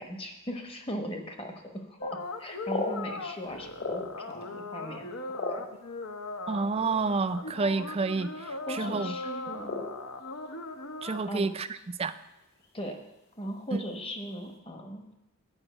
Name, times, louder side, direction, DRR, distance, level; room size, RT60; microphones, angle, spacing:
voice 1, 0.0-2.1 2.4-5.1 5.5-5.6 8.7-9.9 11.2-11.5 12.7-13.0 13.4-15.1, equal, 25° left, 4 dB, 1.1 m, -38 dB
sound 1, 2.0-11.2, left 2 dB, 80° left, 0.9 m, -39 dB
sound 2, 2.3-4.4 4.8-6.3 7.1-7.2 7.4-7.7 8.0-8.4 8.7-9.0 9.6-10.6 10.9-11.8 12.1-12.2 12.6-12.9 13.3-13.7, left 2 dB, 50° left, 1.7 m, -36 dB
voice 2, 6.5-9.1 11.0-11.7 12.0-12.2 13.7-13.8, right 4 dB, 30° right, 12 dB, 0.4 m, -29 dB
8.9 x 5.3 x 7.8 m, 0.92 s
head